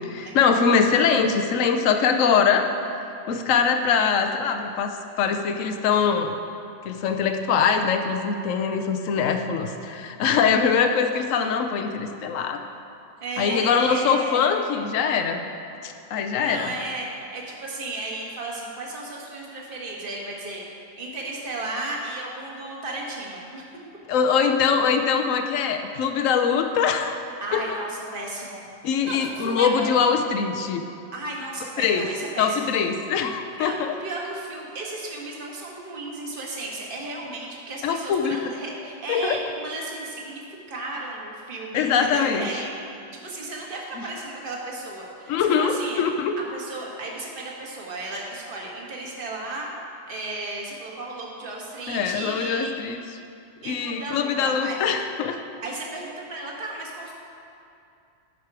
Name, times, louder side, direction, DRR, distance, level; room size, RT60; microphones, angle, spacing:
voice 1, 0.1-2.7 3.3-6.3 6.8-12.6 13.4-15.4 15.8-16.7 24.1-27.2 27.5-27.8 28.8-30.8 31.8-32.1 32.4-33.9 37.8-38.4 39.1-39.4 41.7-42.5 45.3-46.3 51.9-53.0 53.7-55.4, left 6 dB, 65° left, 6 dB, 0.8 m, -23 dB
voice 2, 13.2-14.5 16.1-20.6 21.0-23.7 27.4-28.6 29.1-30.2 31.1-32.7 33.6-33.7 34.0-42.7 43.1-46.0 46.5-49.7 50.1-52.7 53.6-54.8 55.6-57.1, right 2 dB, 30° right, -2 dB, 1.5 m, -34 dB
14.5 x 6.2 x 4.8 m, 2.6 s
omnidirectional pair, 2.0 m